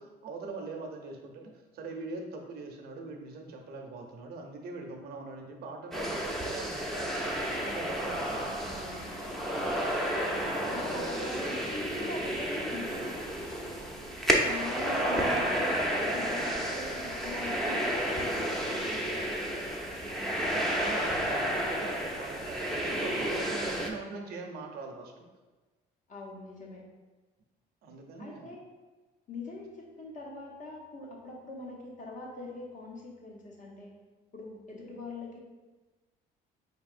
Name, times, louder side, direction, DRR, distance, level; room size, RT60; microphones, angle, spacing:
voice 1, 0.0-7.1 7.6-8.5 10.7-11.4 15.7-15.8 16.4-16.5 20.3-25.3 27.8-28.6, right 3 dB, 70° right, 3 dB, 0.7 m, -42 dB
sound 1, 5.9-23.9, equal, ahead, 0.6 m, -31 dB
voice 2, 7.5-9.2 10.7-13.2 14.4-19.8 26.1-26.8 28.2-28.6 29.3-33.9 34.3-35.4, left 2 dB, 45° left, -2 dB, 1.0 m, -43 dB
4.5 x 3.4 x 2.5 m, 1.2 s
cardioid pair, 110°, 17 cm